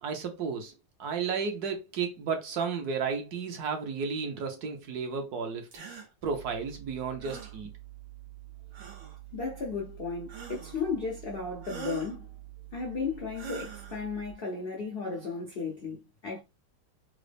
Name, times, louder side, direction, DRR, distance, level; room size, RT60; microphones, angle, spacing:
voice 1, 0.0-5.7 6.2-7.7, right 5 dB, 65° right, 1.2 m, -33 dB
sound 1, 5.7-6.1 7.2-7.6 8.7-9.2 10.3-10.8 11.6-12.2 13.3-14.0, right 5 dB, 80° right, 1.8 m, -42 dB
sound 2, 6.2-14.3, right 19 dB, 10° left, 0.5 m, -48 dB
voice 2, 9.3-12.3 12.7-16.4, left 4 dB, 75° left, 0.5 m, -35 dB
3.8 x 2.1 x 3.3 m
omnidirectional pair, 2.0 m